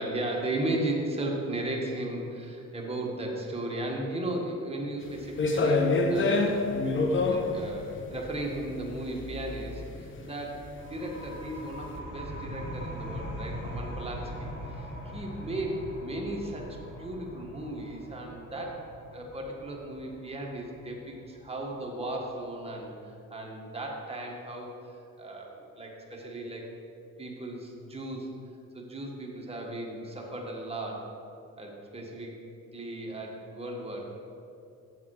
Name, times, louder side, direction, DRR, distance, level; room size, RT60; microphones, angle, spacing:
voice 1, 0.0-6.7 7.2-10.6 10.9-15.7 16.0-26.7 27.2-28.3 28.7-31.1 31.6-32.3 32.7-34.1, right 1 dB, 20° right, -1 dB, 1.6 m, -36 dB
sound 1, 5.1-11.4, left 3 dB, 40° left, 1.0 m, -27 dB
sound 2, 10.8-22.1, equal, 90° left, 1.9 m, -41 dB
7.4 x 7.2 x 4.9 m, 2.6 s
cardioid pair, 90°, 30 cm